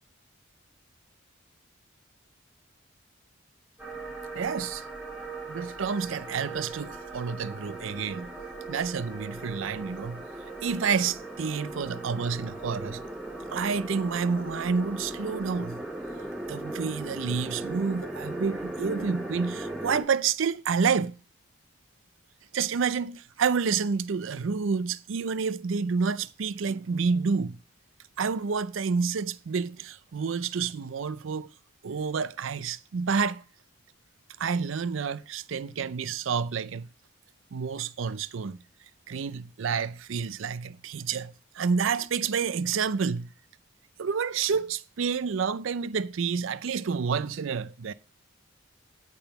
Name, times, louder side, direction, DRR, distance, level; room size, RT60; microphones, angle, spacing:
sound 1, 3.8-20.0, right 2 dB, 5° right, 2.7 m, -38 dB
voice 1, 4.3-4.8 5.5-8.3 8.7-10.2 10.6-13.0 13.5-15.8 16.5-21.1 22.5-27.6 28.2-31.5 31.8-33.4 34.4-36.9 37.5-38.6 39.1-43.3 44.0-47.9, right 5 dB, 75° right, 0.4 m, -29 dB
8.8 x 3.8 x 6.8 m
head